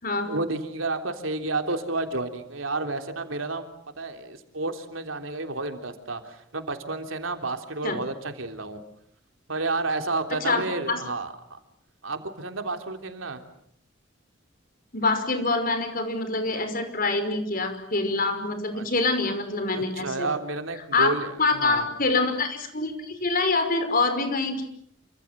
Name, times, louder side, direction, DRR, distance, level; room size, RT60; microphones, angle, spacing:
voice 1, 0.3-3.7 4.0-8.8 9.5-11.6 12.0-13.4 18.7-18.9 19.7-21.9, right 3 dB, 80° right, 6 dB, 3.5 m, -31 dB
voice 2, 14.9-20.3 20.9-21.1 21.4-24.6, left 3 dB, 45° left, 8 dB, 5.6 m, -25 dB
28.5 x 26.0 x 7.6 m, 0.68 s
head